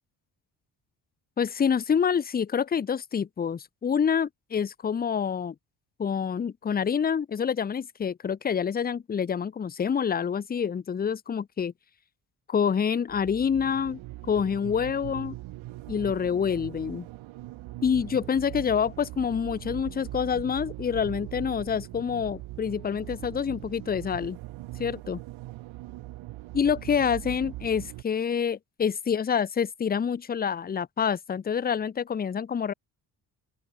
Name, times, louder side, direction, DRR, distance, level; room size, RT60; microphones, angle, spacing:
voice 1, 1.4-5.5 6.0-11.7 12.5-14.0 14.3-15.3 15.9-17.1 17.8-24.4 24.8-25.2 26.5-32.7, left 7 dB, 20° left, 0.5 m, -27 dB
sound 1, 13.1-28.0, right 17 dB, 85° right, 1.6 m, -41 dB
open air
supercardioid pair, 60°, 46 cm